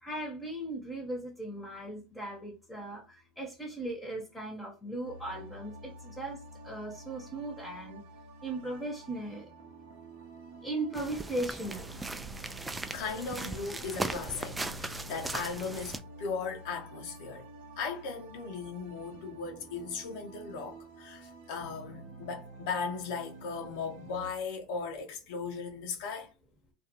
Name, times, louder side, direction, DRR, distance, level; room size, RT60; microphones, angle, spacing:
voice 1, 0.0-8.0 8.4-9.5 10.6-11.9, right 2 dB, 10° left, 1.0 m, -38 dB
sound 1, 5.0-24.3, right 2 dB, 80° right, 0.7 m, -49 dB
sound 2, 10.9-16.0, right 2 dB, 15° right, 0.3 m, -38 dB
voice 2, 12.9-17.5 17.8-26.3, left 5 dB, 70° left, 0.6 m, -37 dB
2.4 x 2.2 x 2.8 m
hypercardioid pair, 85°, 0 cm